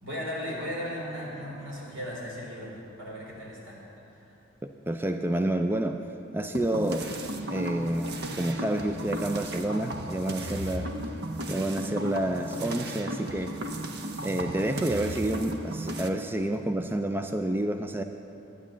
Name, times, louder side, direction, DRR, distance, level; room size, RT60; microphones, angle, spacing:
voice 1, 0.0-3.8 4.2-4.3, equal, 85° right, -3 dB, 3.7 m, -36 dB
voice 2, 4.6-6.0 6.3-7.1 7.5-10.9 11.5-13.6 14.2-18.0, right 1 dB, 10° right, 7 dB, 0.3 m, -29 dB
sound 1, 6.5-16.1, right 1 dB, 55° right, 0.8 m, -35 dB
12.5 x 9.4 x 7.4 m, 2.9 s
head